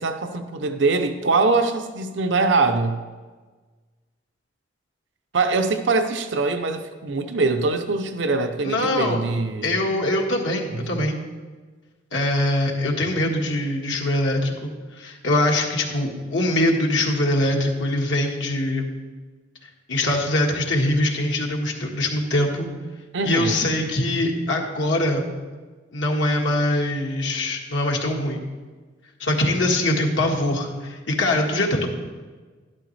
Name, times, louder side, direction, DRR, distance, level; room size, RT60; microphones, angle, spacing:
voice 1, 0.0-3.0 5.3-9.8 10.7-11.1 23.1-23.6, right 3 dB, 80° right, 8 dB, 0.7 m, -23 dB
voice 2, 8.6-9.2 9.6-11.2 12.1-19.0 19.9-22.7 23.2-25.2 25.9-28.4 29.2-31.9, left 1 dB, 80° left, 0 dB, 1.6 m, -23 dB
12.0 x 11.5 x 3.3 m, 1.4 s
head